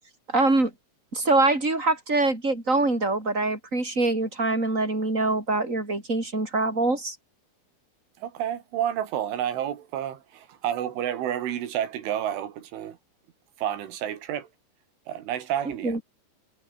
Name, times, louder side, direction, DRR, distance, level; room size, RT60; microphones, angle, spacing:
voice 1, 0.3-0.7 1.1-7.2 15.8-16.0, right 2 dB, 15° right, 7.5 m, -24 dB
voice 2, 8.2-13.0 13.6-14.5 15.1-16.0, right 10 dB, 80° right, 4.7 m, -30 dB
omnidirectional pair, 5.5 m